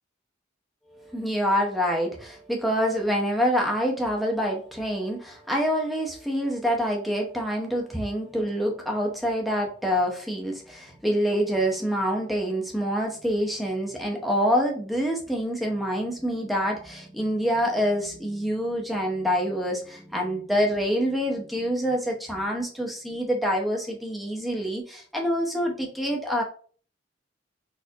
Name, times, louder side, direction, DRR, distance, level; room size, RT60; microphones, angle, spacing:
voice 1, 0.9-26.4, equal, ahead, 0 dB, 0.6 m, -26 dB
4.2 x 2.5 x 2.7 m, 0.44 s
head